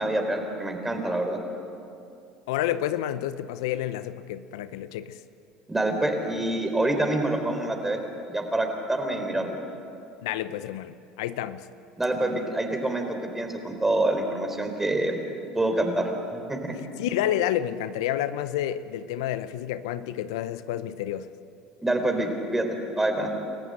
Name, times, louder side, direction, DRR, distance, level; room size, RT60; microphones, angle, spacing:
voice 1, 0.0-1.4 5.7-8.0 8.3-9.6 12.0-15.2 15.5-16.7 21.8-23.3, right 1 dB, 10° right, 4 dB, 4.1 m, -26 dB
voice 2, 2.5-5.2 10.2-11.7 17.0-21.3, left 12 dB, 80° left, 13 dB, 0.8 m, -29 dB
29.0 x 14.5 x 8.0 m, 2.6 s
hypercardioid pair, 85°, 2 cm